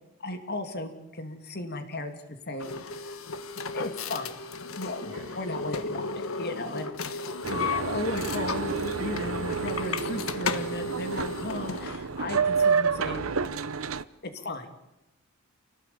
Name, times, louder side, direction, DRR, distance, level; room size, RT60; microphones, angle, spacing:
voice 1, 0.2-2.1 2.5-3.2 3.7-4.4 4.8-13.5 14.2-14.7, left 2 dB, 50° left, 7 dB, 2.8 m, -36 dB
sound 1, 2.6-12.0, left 3 dB, 85° left, 1.5 m, -34 dB
voice 2, 5.0-5.7 9.1-9.7, right 1 dB, 55° right, 2 dB, 6.6 m, -44 dB
Boat Water vehicle, 7.4-14.0, right 5 dB, 90° right, 0.9 m, -29 dB
28.5 x 18.5 x 8.6 m, 0.90 s
head